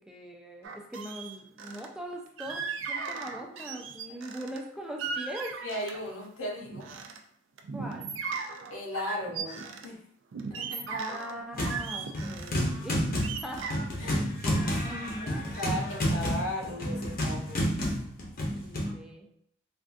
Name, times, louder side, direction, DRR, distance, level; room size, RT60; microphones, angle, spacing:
voice 1, 0.1-5.6 7.7-8.1 10.9-13.1 13.4-13.8 14.4-15.9 18.5-19.3, equal, 5° right, 0 dB, 0.3 m, -41 dB
sound 1, 0.6-1.9 2.4-4.6 5.0-6.1 6.6-7.2 7.6-9.9 10.3-12.5 13.0-15.2 15.5-15.8, right 5 dB, 70° right, 0.4 m, -37 dB
voice 2, 5.6-6.9 8.7-10.0 10.5-11.0 14.0-14.2 15.2-17.6, left 1 dB, 90° left, -1 dB, 0.8 m, -36 dB
sound 2, 11.5-11.9 12.1-18.9, equal, 45° left, 0.7 m, -30 dB
3.3 x 2.4 x 2.5 m, 0.67 s
head